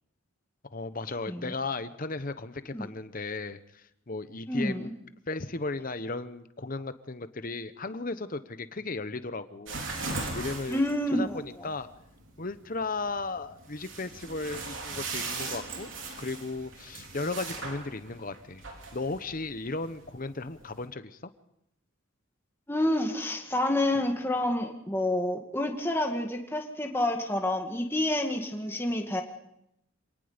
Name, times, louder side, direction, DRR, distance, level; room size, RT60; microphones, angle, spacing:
voice 1, 0.7-4.9 5.3-9.8 10.3-10.8 11.1-11.9 12.4-15.9 16.2-18.6 18.9-21.3, left 3 dB, 40° left, 12 dB, 1.0 m, -35 dB
voice 2, 4.5-4.9 10.7-11.4 22.7-29.2, left 1 dB, 10° left, 2 dB, 2.1 m, -28 dB
sound 1, 9.7-20.8, right 3 dB, 60° right, 4.0 m, -39 dB
27.0 x 18.5 x 5.2 m, 0.80 s
head